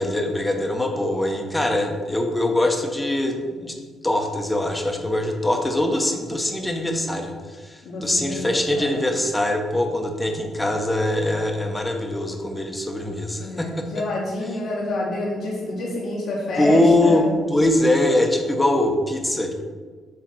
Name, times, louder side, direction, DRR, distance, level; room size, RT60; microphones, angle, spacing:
voice 1, 0.0-3.8 4.0-14.0 16.6-19.5, left 1 dB, 10° left, 3 dB, 1.1 m, -22 dB
voice 2, 7.8-9.0 13.4-17.3, left 1 dB, 75° left, -7 dB, 1.8 m, -28 dB
8.1 x 3.7 x 6.3 m, 1.5 s
cardioid pair, 90°, 0 cm